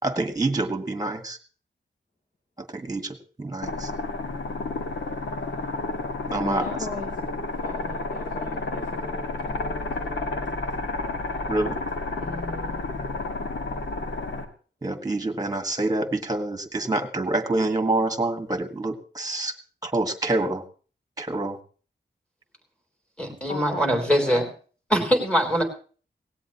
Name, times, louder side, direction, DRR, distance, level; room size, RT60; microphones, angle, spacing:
voice 1, 0.0-1.4 2.6-3.9 6.3-6.7 11.5-11.8 14.8-19.5 19.8-20.6 21.2-21.6 23.2-23.4, right 2 dB, 20° right, 7 dB, 1.8 m, -27 dB
sound 1, 3.6-14.5, left 3 dB, 85° left, 1.9 m, -31 dB
voice 2, 6.3-7.2 7.5-10.4 12.2-12.9 23.5-24.5, left 3 dB, 40° left, -1 dB, 2.9 m, -38 dB
voice 3, 23.2-24.5 24.9-25.6, equal, 5° left, 3 dB, 3.5 m, -22 dB
17.5 x 17.0 x 3.0 m, 0.40 s
wide cardioid pair, 105°, 19 cm